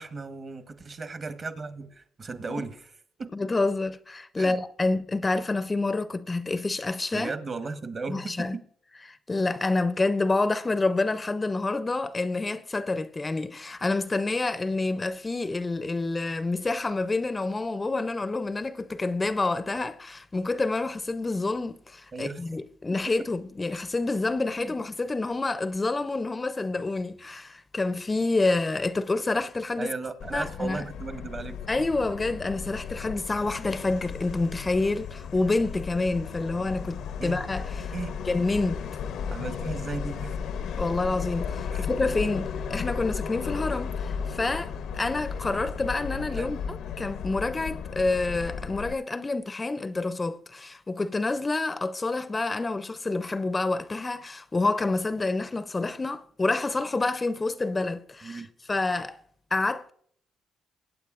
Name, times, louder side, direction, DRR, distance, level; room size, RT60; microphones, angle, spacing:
voice 1, 0.0-2.9 3.2-3.3 4.4-4.6 7.1-8.6 22.1-22.4 23.0-23.1 24.6-24.7 29.8-31.6 37.2-37.4 37.9-38.2 39.3-40.4 41.7-41.8 46.3-46.5 58.2-58.5, right 4 dB, 40° right, 1.0 m, -36 dB
voice 2, 3.3-7.3 8.1-8.6 9.1-29.9 30.3-30.8 31.7-37.9 38.2-38.8 40.7-59.2 59.5-59.9, left 3 dB, 25° left, 0.4 m, -28 dB
Subway metro underground, 30.2-48.9, left 6 dB, 80° left, 0.6 m, -35 dB
22.5 x 8.7 x 2.4 m
cardioid pair, 90°, 0 cm